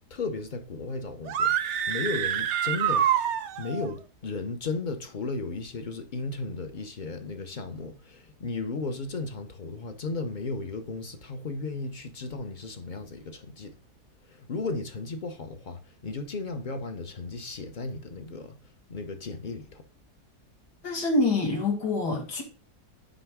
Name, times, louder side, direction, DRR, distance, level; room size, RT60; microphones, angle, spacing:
voice 1, 0.1-3.1 3.6-13.8 14.2-18.6 18.9-19.9, left 3 dB, 50° left, 0.5 m, -35 dB
sound 1, 1.3-3.9, right 9 dB, 65° right, 0.7 m, -26 dB
voice 2, 20.8-22.4, left 2 dB, 75° left, 2.4 m, -26 dB
9.4 x 3.5 x 3.5 m
omnidirectional pair, 1.7 m